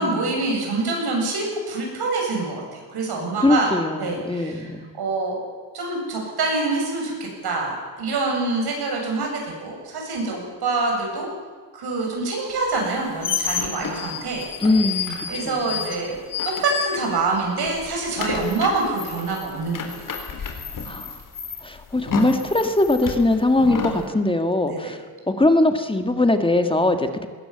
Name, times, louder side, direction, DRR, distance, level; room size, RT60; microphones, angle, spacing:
voice 1, 0.0-3.7 4.0-4.7 5.0-5.4 5.7-11.3 11.7-14.5 15.3-16.2 16.6-19.9 24.7-25.0, right 3 dB, 70° right, 0 dB, 8.0 m, -25 dB
voice 2, 3.4-4.9 14.6-15.8 20.9-21.1 21.6-25.0 25.3-27.3, left 2 dB, 15° left, 7 dB, 1.6 m, -21 dB
sound 1, 12.8-17.4 17.7-24.0, left 6 dB, 50° left, 3.8 m, -30 dB
20.5 x 17.5 x 8.9 m, 1.5 s
cardioid pair, 110°, 40 cm